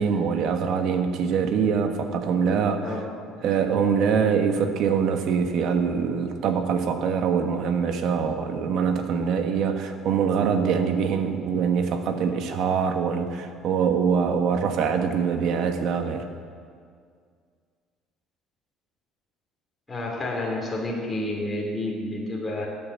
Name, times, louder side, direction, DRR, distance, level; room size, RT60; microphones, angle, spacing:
voice 1, 0.0-2.9 3.4-16.3, right 6 dB, 55° right, 6 dB, 1.5 m, -24 dB
voice 2, 2.4-3.4 19.9-22.7, left 1 dB, 15° left, -3 dB, 2.6 m, -30 dB
16.5 x 9.4 x 7.4 m, 2.1 s
cardioid pair, 145°, 0 cm